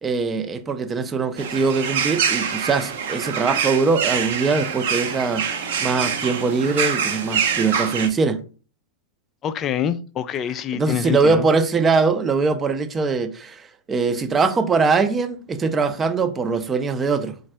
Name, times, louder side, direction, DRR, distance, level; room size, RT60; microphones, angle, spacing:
voice 1, 0.0-8.4 10.7-13.6 13.9-17.3, right 4 dB, 20° right, 0.6 m, -22 dB
sound 1, 1.4-8.1, right 7 dB, 60° right, 0.7 m, -25 dB
voice 2, 9.4-11.5, left 9 dB, 30° left, 0.4 m, -25 dB
4.0 x 2.5 x 4.4 m
figure-of-eight pair, 100°, 0 cm